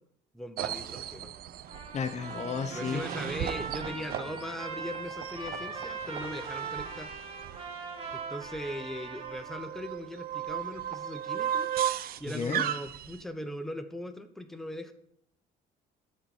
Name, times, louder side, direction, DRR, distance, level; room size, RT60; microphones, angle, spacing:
voice 1, 0.3-1.3 2.7-7.1 8.1-11.7 12.2-14.9, equal, ahead, 7 dB, 1.0 m, -39 dB
sound 1, 0.6-13.2, right 10 dB, 60° right, 0.7 m, -36 dB
Trumpet, 1.7-9.7, right 4 dB, 35° right, 3.2 m, -40 dB
voice 2, 1.9-3.1 12.3-12.6, left 6 dB, 40° left, 10 dB, 0.8 m, -33 dB
12.0 x 4.4 x 7.2 m, 0.71 s
cardioid pair, 110°, 17 cm